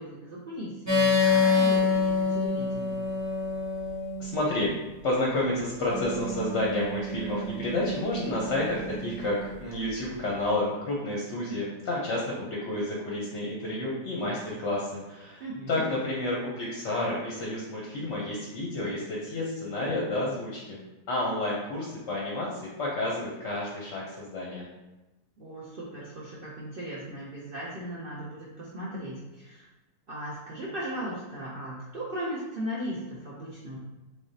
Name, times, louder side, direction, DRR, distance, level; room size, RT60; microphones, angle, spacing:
voice 1, 0.0-3.0 15.4-15.9 25.4-29.7 30.1-33.8, equal, 65° right, -6 dB, 0.5 m, -37 dB
sound 1, 0.9-4.3 5.9-9.5, left 4 dB, 15° right, 0.6 m, -27 dB
voice 2, 4.2-4.7 5.0-20.8 21.1-24.7, left 1 dB, 55° left, -4 dB, 0.8 m, -30 dB
3.5 x 3.4 x 2.7 m, 1.0 s
omnidirectional pair, 1.8 m